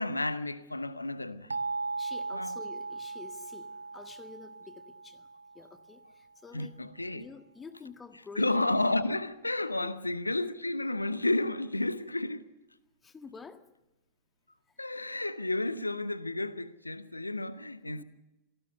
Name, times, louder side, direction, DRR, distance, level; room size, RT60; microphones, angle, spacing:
voice 1, 0.0-1.6 2.3-2.6 6.5-7.3 8.4-12.5 14.8-18.0, left 2 dB, 85° left, 0.9 m, -31 dB
sound 1, 1.5-6.2, right 3 dB, 80° right, 0.9 m, -38 dB
voice 2, 2.0-5.3 5.5-6.8 7.1-8.7 9.8-9.9 13.0-13.7 17.9-18.0, left 5 dB, 15° left, 1.7 m, -49 dB
27.5 x 18.5 x 6.7 m
figure-of-eight pair, 90°, 0 cm